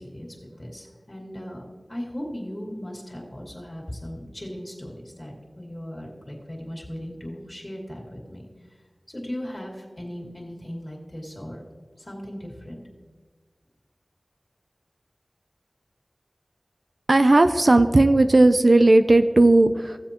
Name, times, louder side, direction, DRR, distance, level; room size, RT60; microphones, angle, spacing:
voice 1, 0.0-8.5 9.1-11.6 12.0-12.8, equal, 30° left, -2 dB, 2.5 m, -37 dB
voice 2, 17.1-20.0, right 2 dB, 65° right, 9 dB, 0.5 m, -16 dB
15.5 x 7.6 x 3.0 m, 1.4 s
wide cardioid pair, 55°, 0 cm